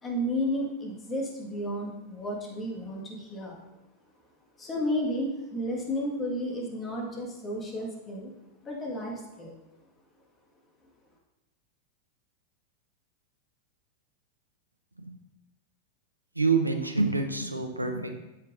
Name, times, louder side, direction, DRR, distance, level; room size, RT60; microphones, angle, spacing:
voice 1, 0.0-3.6 4.6-8.3 8.6-9.6, equal, 20° left, -2 dB, 1.7 m, -32 dB
voice 2, 16.4-18.1, right 4 dB, 85° right, 5 dB, 0.7 m, -27 dB
8.4 x 7.5 x 2.6 m, 0.98 s
figure-of-eight pair, 90°, 0 cm